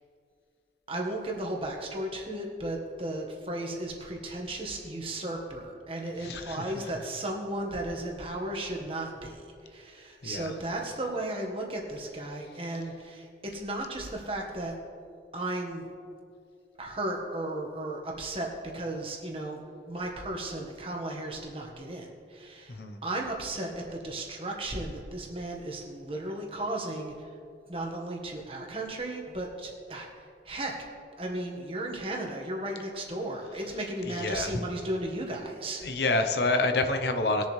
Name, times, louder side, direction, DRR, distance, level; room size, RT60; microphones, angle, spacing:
voice 1, 0.9-14.8 15.3-15.9 16.8-27.1 27.7-30.1 30.4-30.7 31.2-35.8, right 1 dB, 30° right, 0 dB, 1.5 m, -35 dB
voice 2, 6.2-6.7 10.2-10.5 22.7-23.0 34.0-34.6 35.8-37.5, left 2 dB, 70° left, 7 dB, 0.8 m, -28 dB
20.0 x 7.1 x 3.3 m, 2.4 s
head